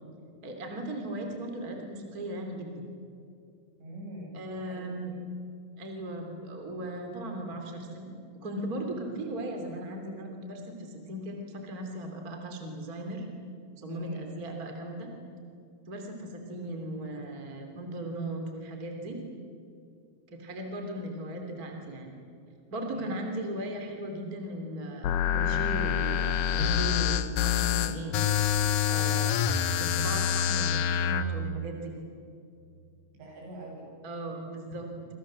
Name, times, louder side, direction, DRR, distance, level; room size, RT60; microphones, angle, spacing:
voice 1, 0.4-2.8 4.3-5.1 5.8-8.2 8.4-13.3 13.8-15.1 15.9-19.2 20.3-22.2 22.7-28.3 28.9-29.5 29.8-31.9 34.0-34.9, right 1 dB, 25° right, 3 dB, 2.7 m, -37 dB
voice 2, 3.8-5.1 13.9-14.2 22.9-23.2 29.3-29.6 33.1-33.9, right 1 dB, 80° right, -1 dB, 10.0 m, -43 dB
sound 1, 25.0-31.2, left 8 dB, 75° left, 2.0 m, -26 dB
27.0 x 27.0 x 7.5 m, 2.4 s
omnidirectional pair, 5.3 m